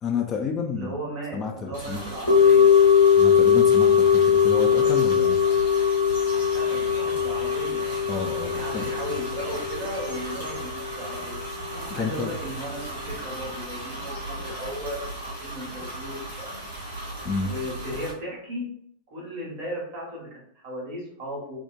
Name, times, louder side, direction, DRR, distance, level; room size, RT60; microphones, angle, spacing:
voice 1, 0.0-1.0 1.3-2.1 3.2-5.6 8.1-8.9 11.9-12.4 17.2-17.5, left 5 dB, 25° left, 2 dB, 0.3 m, -30 dB
voice 2, 0.7-2.8 6.5-11.4 11.9-16.6 17.4-18.7 19.1-21.6, equal, 45° right, -3 dB, 1.1 m, -36 dB
sound 1, 1.7-18.1, right 2 dB, 80° right, 1.0 m, -37 dB
sound 2, 2.3-12.6 12.8-12.9, left 7 dB, 80° left, 0.8 m, -21 dB
2.6 x 2.1 x 2.3 m, 0.66 s
figure-of-eight pair, 90°, 0 cm